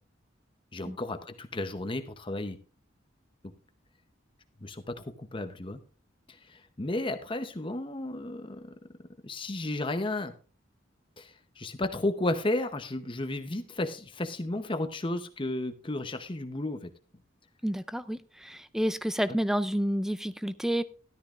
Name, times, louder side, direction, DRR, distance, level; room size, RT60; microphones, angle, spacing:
voice 1, 0.7-2.6 4.6-5.8 6.3-8.7 9.2-10.3 11.2-16.9, left 2 dB, 25° left, 0.8 m, -33 dB
voice 2, 17.6-20.8, equal, ahead, 0.4 m, -29 dB
13.5 x 12.5 x 2.5 m
head